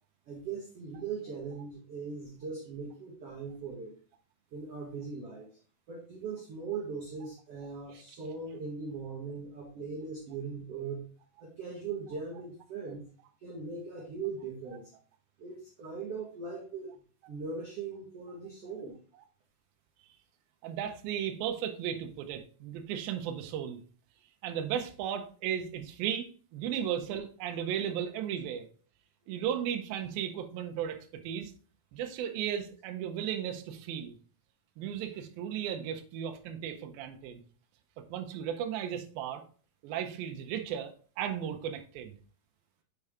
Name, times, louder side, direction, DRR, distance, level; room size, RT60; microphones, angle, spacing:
voice 1, 0.3-4.0 4.5-5.5 5.9-11.1 11.4-13.1 13.4-14.9 15.4-16.9 17.3-18.9, right 5 dB, 60° right, -2 dB, 1.7 m, -40 dB
voice 2, 20.6-23.8 24.4-28.7 29.3-31.0 31.2-31.5 31.9-34.2 34.8-37.4 38.1-39.4 39.8-42.1, right 9 dB, 80° right, 4 dB, 2.5 m, -35 dB
6.8 x 4.6 x 3.5 m, 0.40 s
omnidirectional pair, 4.3 m